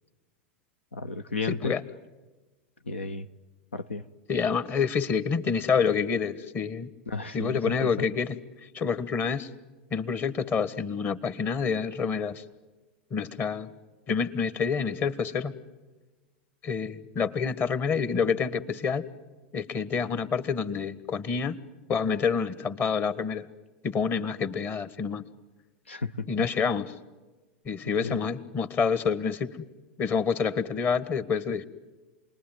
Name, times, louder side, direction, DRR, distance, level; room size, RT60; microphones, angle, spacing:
voice 1, 0.9-1.7 2.9-3.3 3.7-4.1 7.1-7.9 25.9-26.3 28.0-28.2, left 3 dB, 90° left, 11 dB, 0.9 m, -33 dB
voice 2, 1.5-1.8 4.3-6.9 7.3-8.4 8.7-9.5 9.9-12.4 13.1-13.7 14.1-15.5 16.6-19.0 19.5-21.6 21.9-23.5 23.8-25.2 26.3-26.9 27.6-29.5 30.0-31.7, left 6 dB, 35° left, 14 dB, 1.5 m, -27 dB
28.5 x 21.0 x 9.2 m, 1.2 s
hypercardioid pair, 95°, 6 cm